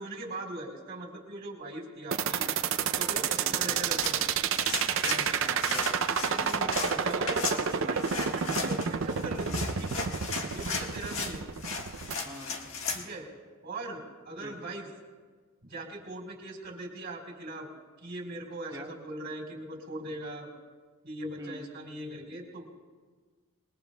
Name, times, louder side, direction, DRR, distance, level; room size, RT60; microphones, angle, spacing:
voice 1, 0.0-2.5 2.8-4.3 4.9-5.4 6.1-10.1 10.5-11.4 12.9-13.3 13.6-14.9 15.7-17.7 18.0-20.5 21.0-22.7, right 2 dB, 45° right, 0 dB, 3.9 m, -40 dB
sound 1, 2.1-12.1, right 7 dB, 60° right, 0.5 m, -29 dB
voice 2, 3.2-4.0 5.3-6.0 6.4-6.7 12.2-12.7 14.4-14.5 18.7-18.9 21.4-21.7, right 1 dB, 20° right, -3 dB, 1.7 m, -45 dB
sound 2, 3.7-13.0, left 4 dB, 65° left, 1.6 m, -36 dB
27.5 x 21.0 x 2.3 m, 1.5 s
head